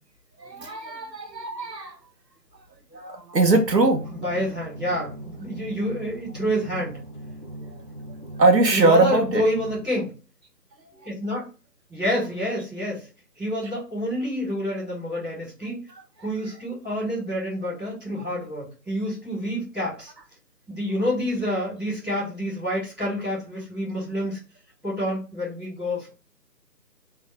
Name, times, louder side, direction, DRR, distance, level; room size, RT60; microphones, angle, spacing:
voice 1, 0.4-2.0 2.9-4.1 8.4-9.4 18.2-18.3, right 3 dB, 90° right, 1.0 m, -21 dB
sound 1, 3.4-9.8, right 1 dB, 30° right, 0.6 m, -40 dB
voice 2, 4.1-7.0 8.7-10.1 11.0-11.5 11.9-13.1 13.4-15.8 16.2-20.1 20.7-24.4 24.8-26.1, equal, ahead, 1.7 m, -28 dB
3.7 x 3.5 x 3.3 m
figure-of-eight pair, 150°, 48 cm